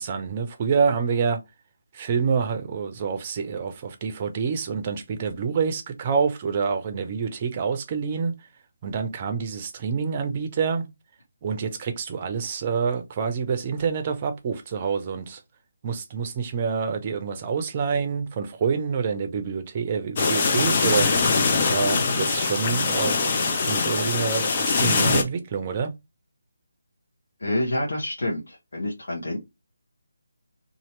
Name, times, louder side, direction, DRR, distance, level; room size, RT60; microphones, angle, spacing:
voice 1, 0.0-1.4 1.9-8.4 8.8-10.9 11.4-15.4 15.8-21.4 21.7-25.9, right 6 dB, 30° right, 0.6 m, -27 dB
sound 1, 20.2-25.2, left 4 dB, 35° left, 0.6 m, -22 dB
voice 2, 27.4-29.4, left 1 dB, 60° left, 0.9 m, -28 dB
2.7 x 2.4 x 3.1 m
figure-of-eight pair, 150°, 0 cm